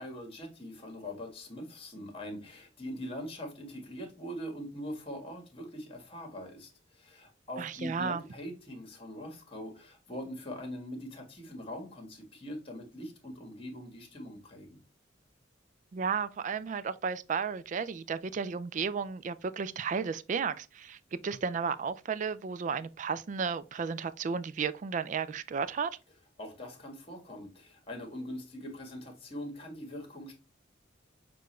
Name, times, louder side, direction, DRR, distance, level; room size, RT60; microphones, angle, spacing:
voice 1, 0.0-14.8 26.4-30.3, equal, 30° left, 1.5 m, -42 dB
voice 2, 7.6-8.2 15.9-26.0, right 6 dB, 40° right, 0.3 m, -33 dB
6.5 x 2.5 x 3.1 m
head